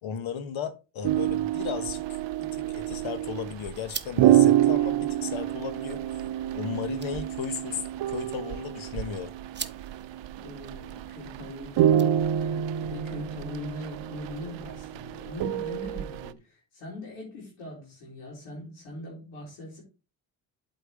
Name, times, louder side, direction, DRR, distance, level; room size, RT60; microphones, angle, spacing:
voice 1, 0.0-6.1 6.5-9.3, left 7 dB, 65° left, 1.3 m, -35 dB
sound 1, 1.0-16.3, right 11 dB, 60° right, 0.7 m, -27 dB
sound 2, 2.3-12.6, right 5 dB, 20° right, 0.9 m, -47 dB
voice 2, 10.4-19.8, left 2 dB, 90° left, 3.0 m, -41 dB
8.1 x 4.7 x 4.7 m
hypercardioid pair, 45°, 50 cm